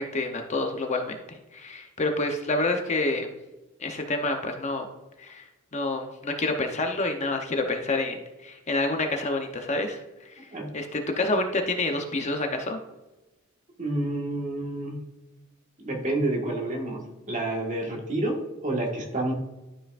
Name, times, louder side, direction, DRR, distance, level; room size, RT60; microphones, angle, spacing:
voice 1, 0.0-3.3 3.8-4.9 5.2-5.5 5.7-10.4 10.7-12.8, left 2 dB, 35° left, 4 dB, 0.8 m, -28 dB
voice 2, 13.8-15.0 15.8-19.3, right 2 dB, 35° right, 0 dB, 1.6 m, -29 dB
12.0 x 5.6 x 2.5 m, 1.0 s
head